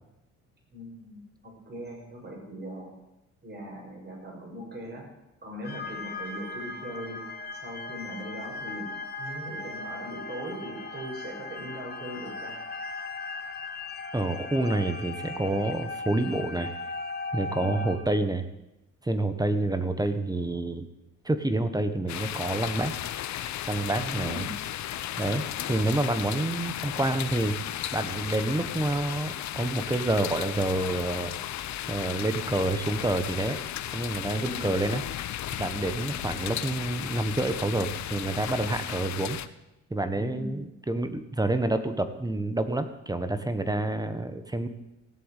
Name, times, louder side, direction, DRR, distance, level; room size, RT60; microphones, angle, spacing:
voice 1, 0.7-2.9 3.4-5.1 5.4-7.2 7.5-8.9 9.2-12.6 17.5-17.8 24.0-24.5 34.3-34.6 40.1-40.6, equal, 35° right, -1 dB, 6.8 m, -40 dB
sound 1, 5.6-18.0, left 3 dB, 35° left, 2.6 m, -38 dB
voice 2, 14.1-16.7 17.3-18.5 19.0-20.9 21.2-22.9 23.7-24.5 25.2-27.6 27.9-31.3 31.9-33.6 33.9-35.0 35.6-39.4 39.9-44.7, right 2 dB, 10° right, 9 dB, 1.4 m, -28 dB
sound 2, 22.1-39.5, left 12 dB, 65° left, 0.8 m, -35 dB
16.5 x 7.9 x 8.4 m, 0.91 s
cardioid pair, 90°, 30 cm